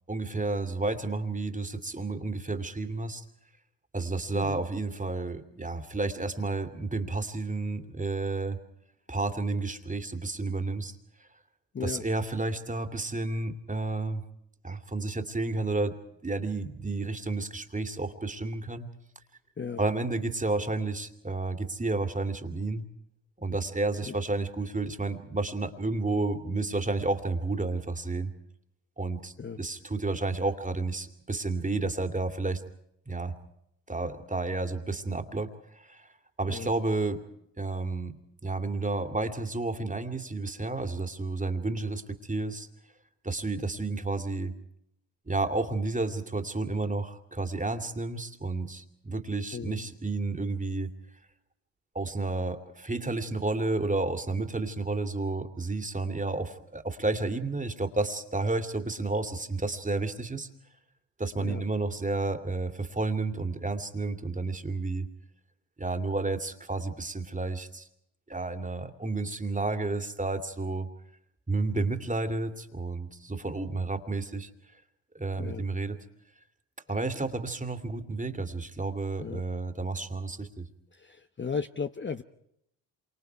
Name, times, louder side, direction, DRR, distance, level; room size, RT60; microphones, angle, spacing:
voice 1, 0.1-3.2 3.9-8.6 9.1-11.3 11.8-14.2 14.6-15.9 16.2-18.9 19.8-22.8 23.4-28.3 29.0-32.6 33.1-33.3 33.9-36.1 36.4-37.2 37.6-42.7 43.2-44.5 45.2-50.9 51.9-60.5 61.2-65.1 65.8-67.9 68.3-70.9 71.5-74.5 75.1-76.0 76.9-80.6, right 3 dB, 15° right, 7 dB, 2.6 m, -31 dB
voice 2, 4.3-4.6 11.7-12.0 19.6-19.8 24.0-24.2 29.4-29.6 36.5-36.7 49.5-49.9 61.4-61.6 75.4-75.6 79.2-79.4 80.9-82.2, left 5 dB, 25° left, 8 dB, 1.0 m, -36 dB
27.5 x 25.0 x 4.7 m, 0.76 s
supercardioid pair, 65°, 44 cm